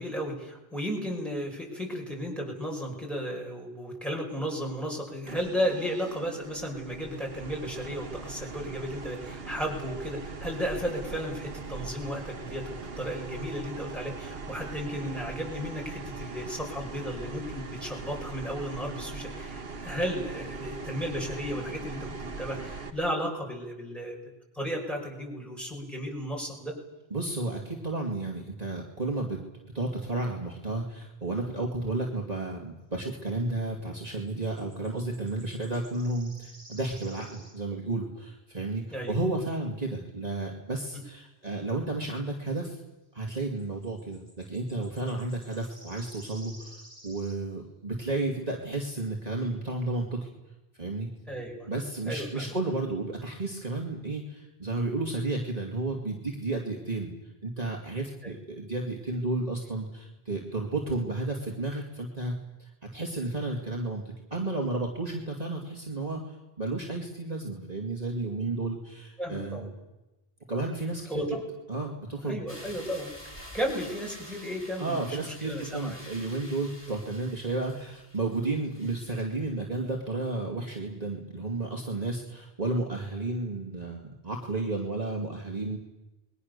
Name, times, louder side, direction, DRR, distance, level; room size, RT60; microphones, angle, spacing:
voice 1, 0.0-26.7 38.9-39.2 40.9-41.0 51.3-51.7 52.0-52.5 58.2-58.3 69.2-69.7 71.1-71.4 72.2-73.1 73.5-76.0 76.5-76.6 78.8-78.9, equal, ahead, -1 dB, 5.9 m, -34 dB
sound 1, 5.3-22.9, right 4 dB, 70° right, 1.7 m, -41 dB
voice 2, 27.1-29.4 29.7-42.8 43.1-50.2 50.8-51.1 51.7-57.1 57.4-62.3 62.6-64.0 64.3-69.7 70.5-71.1 71.7-72.4 74.8-85.8, right 2 dB, 40° right, -1 dB, 2.7 m, -32 dB
sound 2, 34.1-37.9 43.6-47.4, right 1 dB, 20° right, 4.6 m, -53 dB
sound 3, 72.5-79.2, equal, 25° left, 4.1 m, -48 dB
28.0 x 21.5 x 6.8 m, 1.0 s
omnidirectional pair, 1.0 m